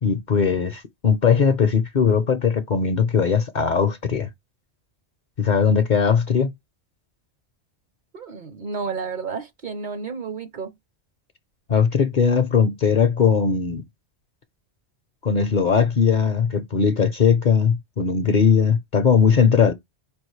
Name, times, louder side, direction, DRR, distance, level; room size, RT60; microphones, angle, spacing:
voice 1, 0.0-4.3 5.4-6.5 11.7-13.9 15.2-19.7, left 6 dB, 50° left, 0.6 m, -19 dB
voice 2, 8.1-10.7, right 5 dB, 50° right, 0.7 m, -31 dB
4.9 x 3.5 x 3.1 m
omnidirectional pair, 1.2 m